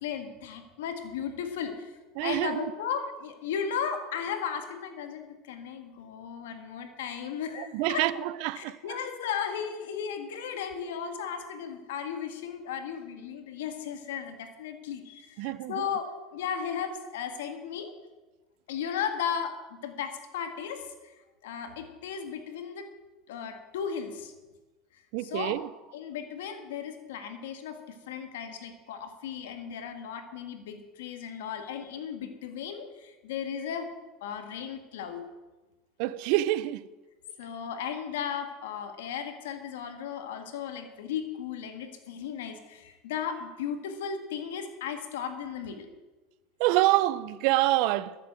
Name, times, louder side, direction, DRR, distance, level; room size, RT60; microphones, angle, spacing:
voice 1, 0.0-8.3 8.6-17.9 18.7-21.1 21.4-22.9 23.3-24.3 25.2-25.6 25.9-33.9 34.2-35.2 37.4-45.9, left 7 dB, 85° left, 1.9 m, -35 dB
voice 2, 2.2-2.7 7.5-9.0 15.4-15.9 25.1-25.7 36.0-36.9 46.6-48.2, right 16 dB, 70° right, 0.6 m, -27 dB
13.0 x 7.7 x 7.7 m
supercardioid pair, 105°, 0 cm